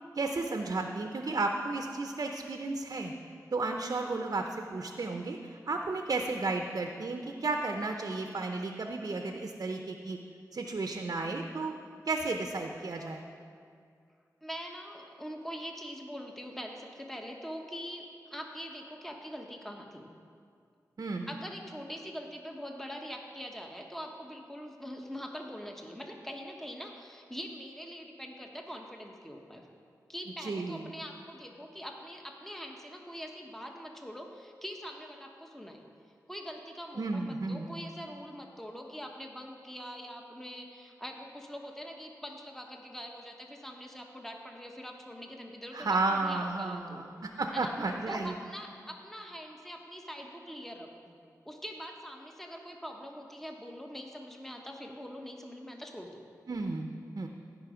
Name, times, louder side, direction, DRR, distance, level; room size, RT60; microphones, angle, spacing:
voice 1, 0.2-3.1 3.5-10.2 10.5-11.7 12.1-13.2 21.0-21.3 30.4-30.8 37.0-37.7 45.7-48.3 56.5-57.3, right 3 dB, 60° right, 4 dB, 0.7 m, -33 dB
voice 2, 14.4-20.1 21.3-29.7 30.1-35.8 36.3-47.0 47.5-47.7 48.1-51.2 51.4-56.2, equal, 5° left, 2 dB, 1.1 m, -43 dB
15.5 x 5.2 x 5.0 m, 2.3 s
cardioid pair, 50°, 7 cm